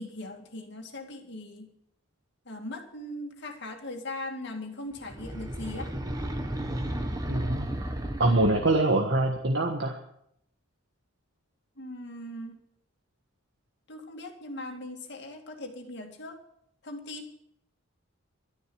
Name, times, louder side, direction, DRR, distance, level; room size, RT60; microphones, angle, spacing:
voice 1, 0.0-1.7 2.5-5.9 11.8-12.6 13.9-16.4 16.8-17.3, left 1 dB, 55° left, 3 dB, 2.3 m, -39 dB
sound 1, 5.0-8.9, right 1 dB, 15° right, 1.2 m, -33 dB
voice 2, 7.3-7.7 8.2-10.0, right 2 dB, 55° right, 2 dB, 1.4 m, -24 dB
13.0 x 10.5 x 7.0 m, 0.72 s
head